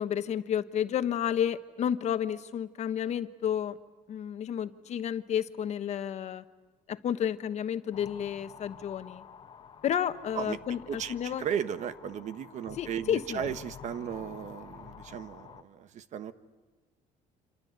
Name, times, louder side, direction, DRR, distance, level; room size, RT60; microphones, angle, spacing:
voice 1, 0.0-3.8 4.1-6.4 6.9-9.2 9.8-11.4 12.8-13.4, left 9 dB, 50° left, 11 dB, 1.2 m, -31 dB
sound 1, 7.9-15.6, left 7 dB, 35° left, 1.4 m, -49 dB
voice 2, 10.9-16.3, right 8 dB, 55° right, 12 dB, 1.4 m, -36 dB
27.5 x 27.0 x 8.1 m, 1.3 s
cardioid pair, 130°, 15 cm